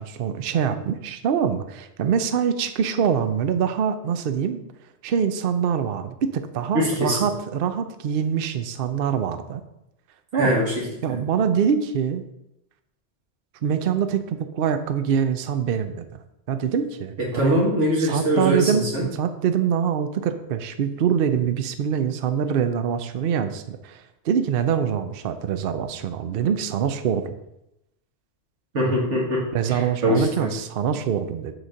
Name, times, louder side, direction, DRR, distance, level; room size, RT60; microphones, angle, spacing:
voice 1, 0.0-4.6 5.0-9.6 10.3-10.5 11.0-12.3 13.6-16.0 16.5-17.6 18.0-27.3 29.5-31.5, right 7 dB, 60° right, 9 dB, 0.8 m, -24 dB
voice 2, 6.7-7.2 10.3-10.7 11.1-11.2 17.3-19.0 28.7-29.4 29.7-30.5, equal, 85° right, -5 dB, 2.1 m, -22 dB
7.8 x 4.2 x 6.4 m, 0.86 s
omnidirectional pair, 1.2 m